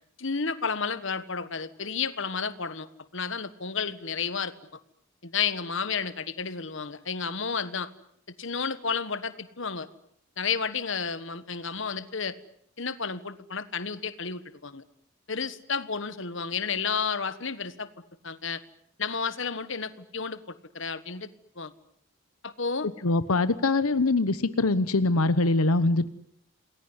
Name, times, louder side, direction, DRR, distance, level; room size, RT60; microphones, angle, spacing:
voice 1, 0.2-2.9 3.1-4.5 5.2-7.9 8.4-9.9 10.4-12.4 12.8-14.8 15.3-17.9 18.2-18.6 19.0-21.3 21.6-21.7 22.4-22.9, left 5 dB, 60° left, 13 dB, 1.4 m, -31 dB
voice 2, 23.0-26.1, left 2 dB, 85° left, 13 dB, 1.1 m, -23 dB
28.0 x 20.5 x 9.7 m, 0.71 s
head